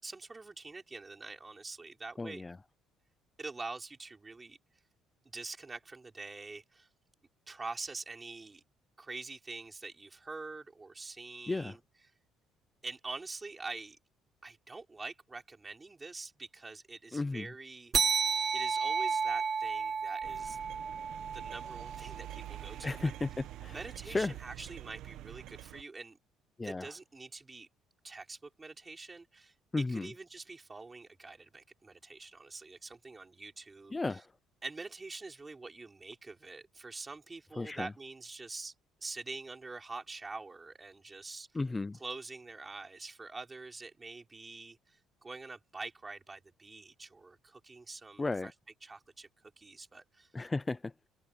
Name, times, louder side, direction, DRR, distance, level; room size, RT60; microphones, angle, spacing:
voice 1, 0.0-2.4 3.4-4.6 5.3-6.9 7.5-8.6 9.0-11.8 12.8-14.0 14.4-18.1 18.5-20.6 21.3-23.1 23.7-26.2 26.6-27.7 28.0-34.2 34.6-38.7 39.0-41.5 41.9-48.5 48.8-49.3 49.6-50.3, right 3 dB, 20° right, 4.9 m, -45 dB
voice 2, 2.2-2.6 11.5-11.8 17.1-17.5 22.8-23.8 24.1-24.3 26.6-26.9 29.7-30.1 33.9-34.2 37.6-37.9 41.5-42.0 48.2-48.5 50.3-51.1, left 3 dB, 15° left, 0.7 m, -34 dB
sound 1, 17.9-22.9, right 6 dB, 35° right, 1.0 m, -32 dB
sound 2, 20.2-25.8, right 14 dB, 75° right, 1.5 m, -47 dB
open air
cardioid pair, 115°, 0 cm